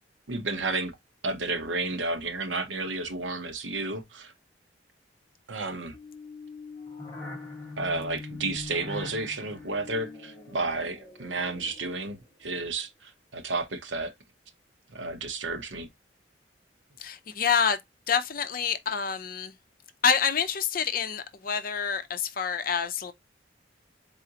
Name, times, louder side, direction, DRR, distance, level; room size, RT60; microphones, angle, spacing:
voice 1, 0.3-0.9 1.2-4.3 5.5-6.0 7.8-14.1 14.9-15.9, right 3 dB, 80° right, 0.9 m, -32 dB
sound 1, 5.9-12.3, left 3 dB, 10° left, 1.7 m, -42 dB
voice 2, 17.0-17.8 18.1-19.5 20.0-23.1, left 7 dB, 50° left, 0.6 m, -27 dB
4.1 x 3.7 x 2.8 m
head